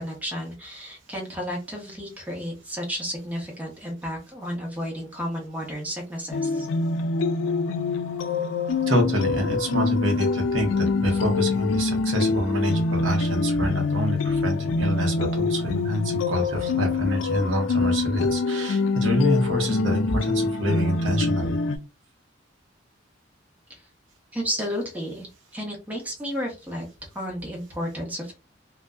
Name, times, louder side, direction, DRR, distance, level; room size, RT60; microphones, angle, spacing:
voice 1, 0.0-6.7 11.1-11.2 23.7-23.8 24.3-25.3 25.5-26.9 27.1-28.3, equal, 10° right, -1 dB, 0.8 m, -32 dB
sound 1, 6.3-21.8, left 4 dB, 75° left, 0.3 m, -25 dB
voice 2, 8.9-21.6, equal, 85° right, 2 dB, 0.8 m, -26 dB
2.6 x 2.1 x 2.2 m, 0.29 s
head